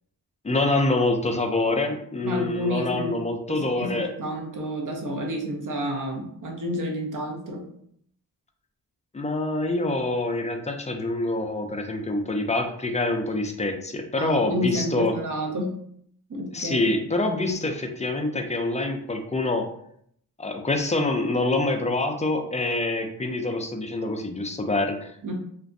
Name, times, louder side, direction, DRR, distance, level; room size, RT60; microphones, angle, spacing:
voice 1, 0.4-4.1 9.1-15.1 16.5-19.7 20.4-25.3, left 2 dB, 20° left, 4 dB, 0.4 m, -26 dB
voice 2, 2.2-3.1 3.5-7.7 14.2-15.8 16.3-16.9 25.2-25.3, equal, 55° right, 0 dB, 0.8 m, -30 dB
2.5 x 2.2 x 2.6 m, 0.67 s
cardioid pair, 55°, 39 cm